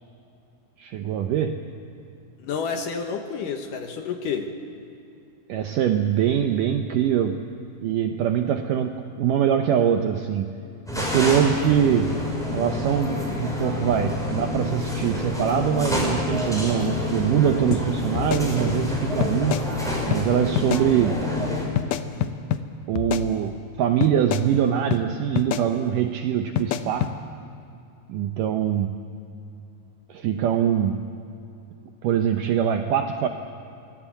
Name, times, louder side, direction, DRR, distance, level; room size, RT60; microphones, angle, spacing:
voice 1, 0.8-1.7 5.5-7.5 7.8-10.6 10.9-12.2 12.5-19.6 20.1-21.3 22.9-27.1 28.1-29.1 30.1-31.1 32.0-33.3, right 9 dB, 75° right, 6 dB, 1.9 m, -23 dB
voice 2, 2.4-4.5, left 6 dB, 65° left, 5 dB, 2.4 m, -29 dB
sound 1, 10.9-21.6, left 2 dB, ahead, 4.9 m, -28 dB
sound 2, 17.7-17.8 18.2-18.9 19.2-19.7 20.1-20.2 20.6-20.9 21.8-22.6 23.0-23.7 24.0-24.5 24.9-25.0 25.4-25.7 26.6-27.1, left 10 dB, 90° left, 1.7 m, -27 dB
24.5 x 19.0 x 8.1 m, 2.6 s
omnidirectional pair, 4.7 m